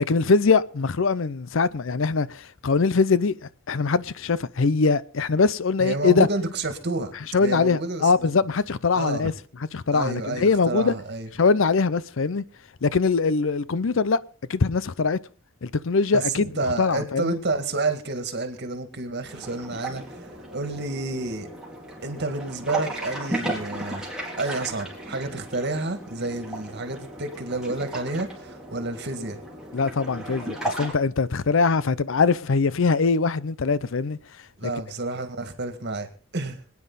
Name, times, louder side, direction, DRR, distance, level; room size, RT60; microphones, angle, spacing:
voice 1, 0.0-3.4 3.7-6.3 7.3-9.3 9.7-10.9 11.3-12.4 12.8-14.2 14.5-15.2 15.6-16.5 16.8-17.3 29.7-34.2, left 4 dB, 70° left, 0.6 m, -22 dB
voice 2, 5.8-7.1 7.4-8.2 8.9-9.3 9.9-11.3 16.1-16.2 16.6-21.5 22.0-24.0 24.4-29.4 34.6-36.1 36.3-36.6, right 2 dB, 55° right, 2.1 m, -30 dB
sound 1, 19.3-30.9, right 1 dB, 5° right, 3.8 m, -35 dB
24.5 x 9.6 x 4.1 m
head